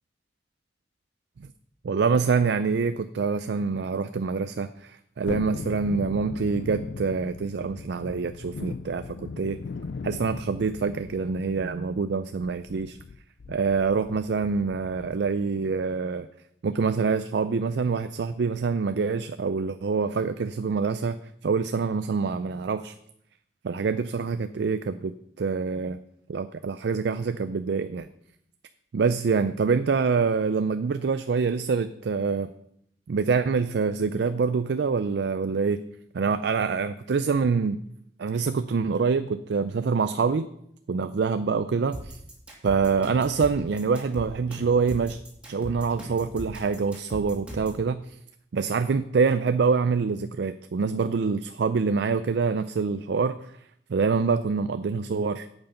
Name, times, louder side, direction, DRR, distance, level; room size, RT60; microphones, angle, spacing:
voice 1, 1.8-9.6 10.0-13.0 13.5-16.3 16.6-21.2 21.4-22.9 23.6-25.1 25.4-26.0 26.3-28.1 28.9-32.5 33.1-35.8 36.1-37.8 38.2-40.5 40.9-42.2 42.6-45.2 45.5-48.1 48.5-53.4 53.9-55.5, right 5 dB, 70° right, 11 dB, 0.4 m, -25 dB
Thunderstorm, 5.3-15.5 15.8-15.9, left 4 dB, 65° left, 0.4 m, -39 dB
sound 1, 41.9-47.8, right 1 dB, 5° right, 2.7 m, -39 dB
8.8 x 8.0 x 5.6 m, 0.72 s
head